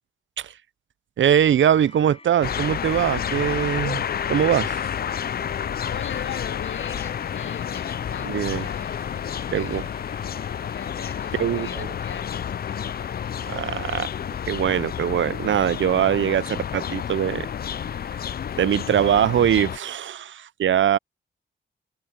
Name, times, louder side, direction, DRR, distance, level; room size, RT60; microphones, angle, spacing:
voice 1, 1.2-4.0 4.3-4.8 8.2-8.7 9.5-9.8 11.3-11.9 13.4-14.1 14.5-17.5 18.6-21.0, right 9 dB, 75° right, 0.5 m, -22 dB
sound 1, 1.7-16.8 17.0-17.1, left 3 dB, 30° left, 7.9 m, -51 dB
sound 2, 2.4-19.8, left 8 dB, 50° left, 0.4 m, -30 dB
voice 2, 5.9-9.9 10.7-13.4, left 8 dB, 75° left, 0.9 m, -40 dB
wide cardioid pair, 110°, 20 cm